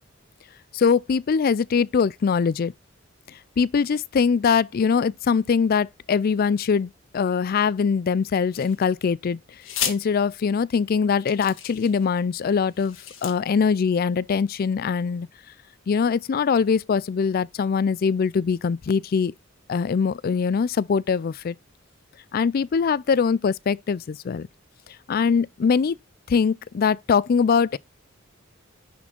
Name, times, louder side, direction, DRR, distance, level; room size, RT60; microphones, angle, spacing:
voice 1, 0.7-2.7 3.6-9.4 9.8-13.0 13.2-15.3 15.9-19.3 19.7-21.6 22.3-24.5 25.1-26.0 26.3-27.8, left 6 dB, 45° left, 0.4 m, -22 dB
sound 1, 8.5-9.1 9.6-10.0 10.7-10.8 11.3-12.1 12.7-13.3, left 9 dB, 65° left, 1.5 m, -32 dB
10.0 x 4.3 x 4.4 m
head